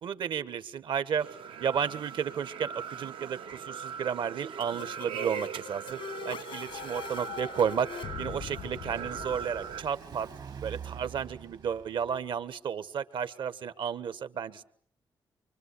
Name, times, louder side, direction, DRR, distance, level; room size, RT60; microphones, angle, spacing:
voice 1, 0.0-6.0 6.2-10.3 10.6-14.6, right 7 dB, 75° right, 12 dB, 1.5 m, -33 dB
sound 1, 1.2-9.8, right 7 dB, 90° right, 1.1 m, -40 dB
sound 2, 4.6-10.3, left 7 dB, 90° left, 1.3 m, -43 dB
Car passing by, 7.0-12.4, right 7 dB, 55° right, 1.3 m, -47 dB
25.5 x 24.5 x 8.5 m, 0.63 s
wide cardioid pair, 145°, 8 cm